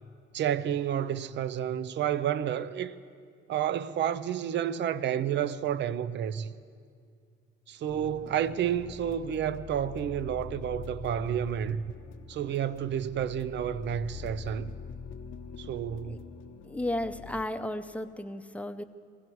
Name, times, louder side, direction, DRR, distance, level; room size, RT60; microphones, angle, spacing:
voice 1, 0.3-2.9 3.5-6.5 7.7-11.9 12.3-14.7 15.6-16.2, right 9 dB, 65° right, 0.6 m, -30 dB
sound 1, 7.9-17.4, left 6 dB, 75° left, 0.8 m, -44 dB
voice 2, 16.6-18.8, left 1 dB, 5° left, 0.6 m, -34 dB
19.5 x 16.0 x 4.6 m
cardioid pair, 90°, 20 cm